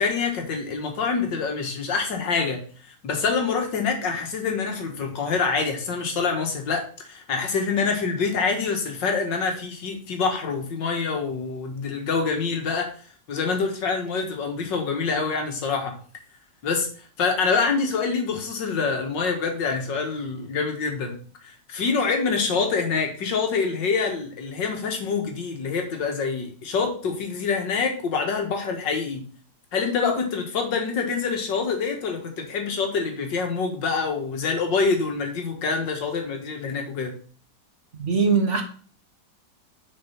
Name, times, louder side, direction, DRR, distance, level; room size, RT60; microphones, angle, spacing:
voice 1, 0.0-2.6 3.0-12.9 13.3-16.0 16.6-16.9 17.2-21.2 21.4-29.2 29.7-37.2, left 5 dB, 90° left, 2.2 m, -26 dB
voice 2, 38.0-38.6, right 5 dB, 45° right, 1.6 m, -21 dB
6.7 x 5.2 x 5.8 m
omnidirectional pair, 1.9 m